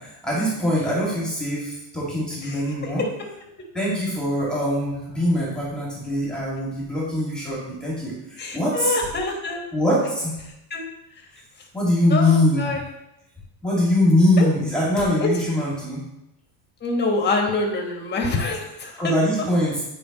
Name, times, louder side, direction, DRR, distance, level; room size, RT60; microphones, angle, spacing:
voice 1, 0.0-3.0 3.7-8.9 9.7-10.4 11.7-12.8 13.6-16.1 19.0-19.8, left 1 dB, ahead, -6 dB, 2.1 m, -22 dB
voice 2, 2.4-3.3 8.4-9.6 10.7-10.9 11.1-11.3 12.1-12.8 14.4-14.5 15.2-15.3 16.8-19.2, left 3 dB, 25° left, 1 dB, 1.4 m, -26 dB
9.3 x 4.9 x 3.0 m, 0.85 s
cardioid pair, 140°, 42 cm